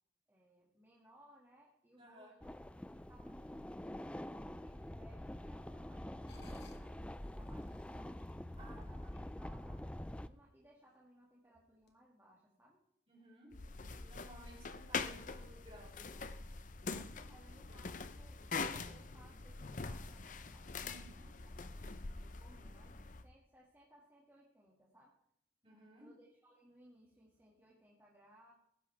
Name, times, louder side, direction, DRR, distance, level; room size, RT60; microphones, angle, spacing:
voice 1, 0.3-8.2 8.7-12.9 14.5-14.6 17.3-25.2 26.0-28.5, right 1 dB, 15° right, -5 dB, 2.2 m, -65 dB
voice 2, 2.0-2.3 6.0-6.6 6.8-7.0 8.6-8.8 13.1-13.5 14.0-16.5 20.8-21.2 25.6-26.1, right 1 dB, 35° right, -3 dB, 5.9 m, -58 dB
sound 1, 2.4-10.3, left 1 dB, 5° left, 0.4 m, -46 dB
sound 2, 6.3-9.7 10.2-10.3 10.9-11.2 11.8-11.9, left 4 dB, 70° left, 1.9 m, -66 dB
sound 3, 13.5-23.2, left 4 dB, 45° left, 0.7 m, -44 dB
18.5 x 10.5 x 3.5 m, 0.75 s
head